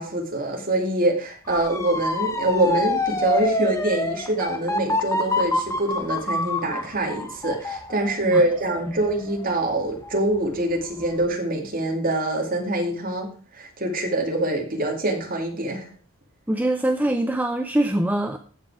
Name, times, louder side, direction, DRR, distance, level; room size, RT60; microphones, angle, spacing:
voice 1, 0.0-13.3 13.6-15.9, right 1 dB, 40° right, 2 dB, 2.4 m, -24 dB
Motor vehicle (road) / Siren, 1.5-10.4 10.8-11.2, left 2 dB, 15° left, 1.0 m, -27 dB
voice 2, 16.5-18.4, right 1 dB, 5° right, 5 dB, 0.6 m, -23 dB
15.0 x 5.3 x 4.8 m, 0.41 s
head